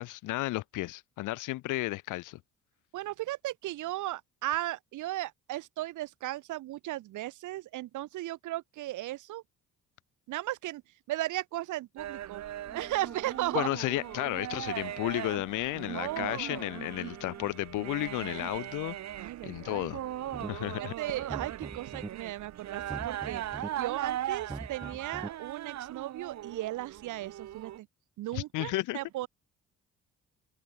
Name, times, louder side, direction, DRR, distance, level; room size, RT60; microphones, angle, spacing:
voice 1, 0.0-2.4 13.5-20.0 20.5-20.9 28.3-29.0, left 18 dB, 90° left, 0.9 m, -33 dB
voice 2, 2.9-9.4 10.3-10.8 11.1-12.4 12.7-13.7 15.9-16.7 19.2-19.9 20.8-23.4 23.8-27.9 28.2-29.3, right 16 dB, 80° right, 1.1 m, -36 dB
sound 1, 12.0-27.8, right 12 dB, 65° right, 1.1 m, -39 dB
Wind instrument woodwind instrument, 12.6-17.6, left 1 dB, 10° left, 4.9 m, -54 dB
sound 2, 20.3-20.8 21.1-22.1 22.7-23.7 24.3-25.3, right 3 dB, 15° right, 0.7 m, -42 dB
cardioid pair, 90°, 30 cm